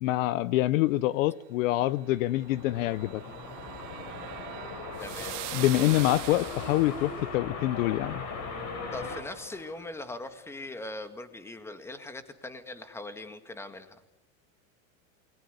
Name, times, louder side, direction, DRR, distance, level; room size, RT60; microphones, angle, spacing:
voice 1, 0.0-3.2 5.5-8.2, left 16 dB, 65° left, 0.9 m, -26 dB
sound 1, 2.0-10.3, left 4 dB, 40° left, 6.3 m, -39 dB
sound 2, 2.5-7.1, right 18 dB, 60° right, 2.1 m, -42 dB
voice 2, 5.0-5.4 8.9-14.0, left 2 dB, 5° left, 1.9 m, -41 dB
28.5 x 22.0 x 8.1 m
supercardioid pair, 155°, 42 cm